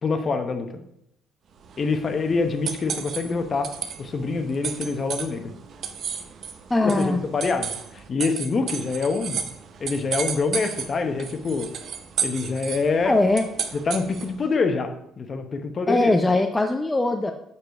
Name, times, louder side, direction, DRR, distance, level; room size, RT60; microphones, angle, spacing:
voice 1, 0.0-0.7 1.8-3.7 4.0-5.5 6.8-9.4 9.8-11.7 12.2-13.2 13.9-16.1, left 4 dB, 35° left, 7 dB, 0.8 m, -25 dB
sound 1, 1.6-14.4, right 7 dB, 55° right, 0.7 m, -34 dB
voice 2, 6.7-7.2 13.0-13.5 15.9-17.3, left 2 dB, 15° left, 5 dB, 0.5 m, -21 dB
6.9 x 4.9 x 4.7 m, 0.78 s
cardioid pair, 115°, 0 cm